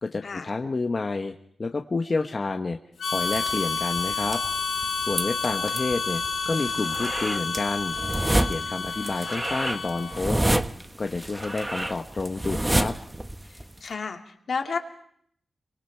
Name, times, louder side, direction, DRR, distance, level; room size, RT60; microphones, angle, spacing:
voice 1, 0.0-1.3 1.6-2.8 3.1-4.4 5.0-8.0 8.4-10.6 11.0-12.9, left 3 dB, 40° left, 5 dB, 1.2 m, -29 dB
Harmonica, 3.0-10.3, left 5 dB, 85° left, 5.0 m, -30 dB
sound 1, 3.2-13.9, right 1 dB, 15° right, 0.8 m, -29 dB
voice 2, 13.5-14.8, left 5 dB, 65° left, 4 dB, 2.4 m, -32 dB
28.5 x 24.0 x 4.6 m, 0.67 s
wide cardioid pair, 90°, 0 cm